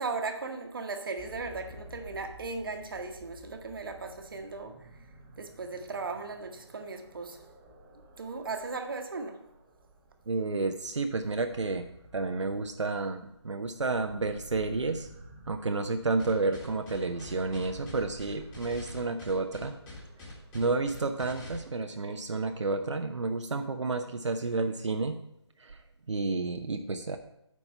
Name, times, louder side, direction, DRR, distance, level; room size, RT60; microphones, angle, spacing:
voice 1, 0.0-4.9 5.4-7.4 8.2-9.4, right 4 dB, 50° right, 1.1 m, -37 dB
sound 1, 1.2-21.0, right 1 dB, 10° right, 0.7 m, -52 dB
voice 2, 10.3-11.8 12.1-15.1 15.5-19.8 20.5-25.2 25.6-27.2, right 3 dB, 85° right, 0.7 m, -31 dB
sound 2, 16.2-21.6, left 2 dB, 15° left, 1.7 m, -45 dB
9.2 x 4.2 x 5.5 m
figure-of-eight pair, 160°, 15 cm